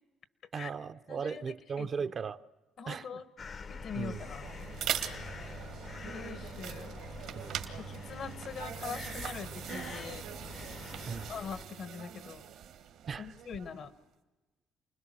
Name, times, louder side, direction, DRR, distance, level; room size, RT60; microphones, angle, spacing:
voice 1, 0.5-2.4 2.9-3.2 3.9-4.2 7.3-7.9 11.1-11.3 13.1-13.3, right 6 dB, 45° right, 0.7 m, -38 dB
voice 2, 1.1-1.4 1.8-1.9 2.8-3.2 3.7-4.4 5.0-5.1 6.0-6.9 7.8-10.2 11.3-12.4 13.2-13.9, left 6 dB, 65° left, 1.4 m, -42 dB
sound 1, 3.4-11.7, left 5 dB, 45° left, 0.9 m, -46 dB
sound 2, 4.0-13.9, right 9 dB, 80° right, 1.8 m, -41 dB
29.0 x 20.5 x 6.3 m
supercardioid pair, 75°, 0 cm